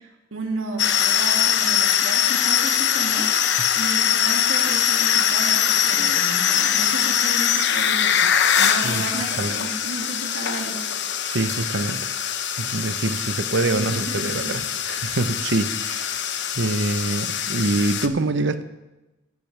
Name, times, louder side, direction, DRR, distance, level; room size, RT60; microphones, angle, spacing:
voice 1, 0.0-10.8 13.6-14.5, right 2 dB, 85° right, 0 dB, 2.3 m, -33 dB
sound 1, 0.8-18.1, left 9 dB, 60° left, 0.8 m, -22 dB
voice 2, 11.3-12.1 12.6-18.6, right 2 dB, 60° right, 11 dB, 0.8 m, -25 dB
15.0 x 14.0 x 3.4 m, 1.0 s
head